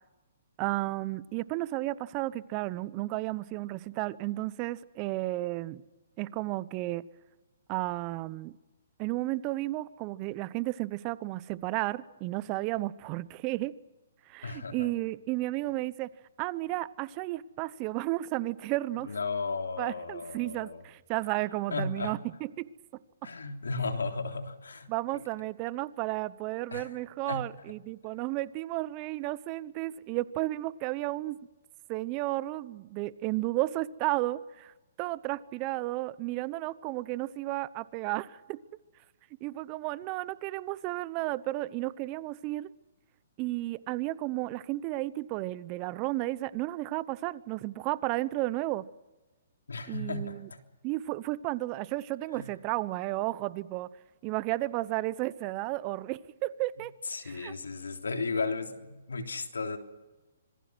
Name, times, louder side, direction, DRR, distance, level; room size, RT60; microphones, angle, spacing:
voice 1, 0.6-5.8 6.2-7.0 7.7-8.5 9.0-13.7 14.3-16.1 16.4-19.1 19.8-22.7 24.9-31.4 31.9-38.6 39.4-42.7 43.4-48.8 49.9-50.5 50.8-53.9 54.2-56.9 57.2-57.5, right 18 dB, 30° right, 18 dB, 0.9 m, -33 dB
voice 2, 14.4-14.9 19.0-20.8 21.7-22.2 23.2-24.9 26.7-27.4 49.7-50.6 52.3-52.5 57.1-59.8, left 4 dB, 85° left, 5 dB, 3.3 m, -35 dB
26.0 x 20.5 x 6.3 m, 1.1 s
hypercardioid pair, 140°, 0 cm